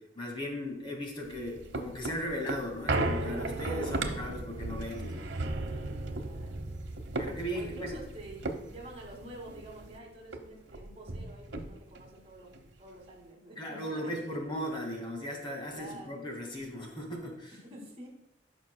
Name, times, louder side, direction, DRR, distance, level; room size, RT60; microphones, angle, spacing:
voice 1, 0.2-5.4 7.2-8.0 13.6-17.5, equal, 30° left, 1 dB, 1.9 m, -37 dB
sound 1, 1.3-10.0 10.3-10.4 10.7-12.1 12.5-12.6, right 2 dB, 85° right, 0.9 m, -36 dB
voice 2, 6.2-6.6 7.5-14.1 15.7-16.3 17.5-18.1, right 1 dB, 35° right, 0 dB, 2.2 m, -48 dB
15.5 x 6.0 x 2.2 m, 0.84 s
head